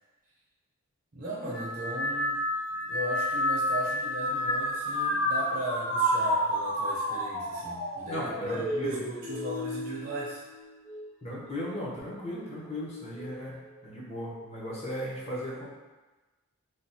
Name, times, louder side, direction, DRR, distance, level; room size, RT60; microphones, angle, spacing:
voice 1, 1.1-2.4 2.8-10.4, right 1 dB, 40° right, -6 dB, 0.5 m, -37 dB
sound 1, 1.5-11.1 11.6-12.2 13.1-13.5, equal, 80° left, 1.0 m, -31 dB
voice 2, 8.0-9.0 11.2-15.6, left 1 dB, 30° left, -6 dB, 0.7 m, -37 dB
3.2 x 2.4 x 2.7 m, 1.2 s
head